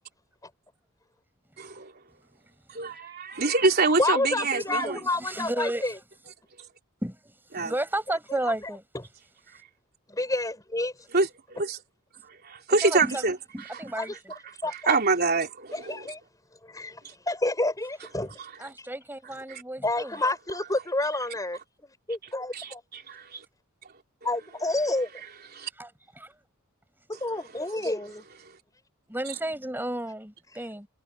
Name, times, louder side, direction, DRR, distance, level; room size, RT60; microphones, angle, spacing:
voice 1, 1.6-1.9 2.7-5.0 7.5-7.7 11.1-11.8 12.4-13.4 14.9-16.0 19.5-19.6 22.5-23.4 25.5-25.7, right 3 dB, 45° right, 3.8 m, -25 dB
voice 2, 4.0-6.0 8.6-9.0 10.1-10.9 14.0-14.2 14.6-15.0 15.7-16.2 16.6-18.4 19.8-22.8 24.2-25.1 27.1-28.2, left 2 dB, 15° left, 5.6 m, -29 dB
voice 3, 4.5-5.9 7.0-7.2 7.6-8.8 12.8-13.2 13.5-14.1 18.6-20.1 25.8-26.3 29.1-30.9, right 1 dB, 10° right, 7.1 m, -33 dB
head